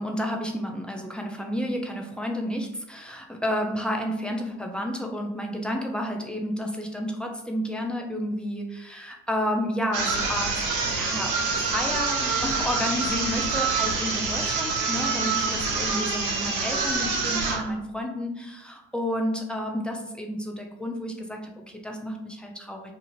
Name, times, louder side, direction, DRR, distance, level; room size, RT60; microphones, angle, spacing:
voice 1, 0.0-22.9, equal, 5° left, 2 dB, 0.4 m, -31 dB
sound 1, 9.9-17.7, right 4 dB, 60° right, 0.8 m, -26 dB
2.6 x 2.4 x 2.8 m, 0.84 s
hypercardioid pair, 60°, 36 cm